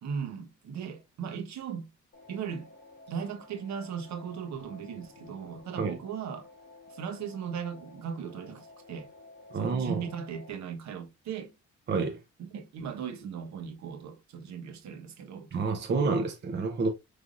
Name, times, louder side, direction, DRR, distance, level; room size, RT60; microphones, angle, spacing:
voice 1, 0.0-1.9 2.3-2.7 3.1-6.5 6.9-9.1 9.6-11.5 12.4-15.5, right 7 dB, 65° right, 0.9 m, -38 dB
sound 1, 2.1-10.5, left 2 dB, 35° left, 1.9 m, -52 dB
voice 2, 9.5-10.0 11.9-12.2 15.5-16.9, right 4 dB, 35° right, 0.7 m, -28 dB
5.2 x 3.3 x 2.4 m
cardioid pair, 155°, 30 cm